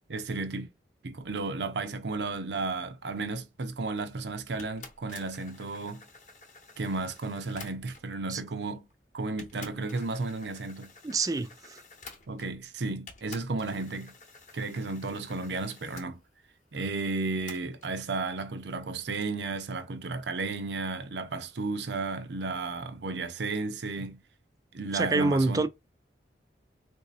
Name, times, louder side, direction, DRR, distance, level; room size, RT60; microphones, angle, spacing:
voice 1, 0.1-0.7 1.0-6.0 6.8-8.9 9.1-10.9 12.3-14.1 14.5-16.2 16.7-24.2 24.7-25.6, right 3 dB, 85° right, 0.6 m, -33 dB
sound 1, 4.6-8.2 8.9-9.0 9.4-12.7 13.1-16.1 17.5-18.0, left 4 dB, 45° left, 0.8 m, -50 dB
voice 2, 11.0-11.8 24.9-25.7, right 3 dB, 20° right, 0.3 m, -27 dB
3.9 x 2.7 x 2.5 m
head